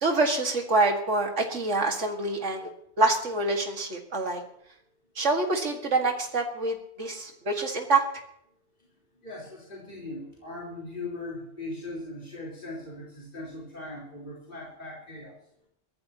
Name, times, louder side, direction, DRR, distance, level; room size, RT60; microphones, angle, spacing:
voice 1, 0.0-2.7 3.0-4.4 5.2-8.0, right 3 dB, 85° right, 2 dB, 2.4 m, -26 dB
voice 2, 9.2-15.4, left 2 dB, 45° left, -5 dB, 4.3 m, -39 dB
22.5 x 16.5 x 3.0 m, 0.70 s
omnidirectional pair, 1.2 m